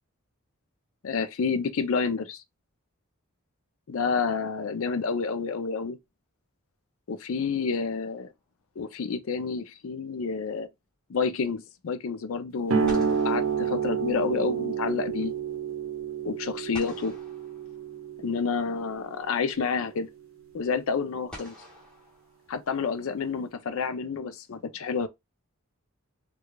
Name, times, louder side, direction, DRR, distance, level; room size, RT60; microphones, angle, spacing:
voice 1, 1.0-2.4 3.9-6.0 7.1-8.3 8.8-10.7 11.1-15.3 16.2-17.2 18.2-20.1 20.5-21.5 22.5-25.1, left 5 dB, 70° left, 0.4 m, -29 dB
sound 1, 7.4-8.2 12.3-12.4 12.8-14.6 16.7-18.3 19.7-19.8 21.3-22.9, left 1 dB, 5° left, 1.2 m, -48 dB
sound 2, 12.7-19.8, right 7 dB, 60° right, 0.6 m, -30 dB
4.7 x 2.3 x 2.2 m
head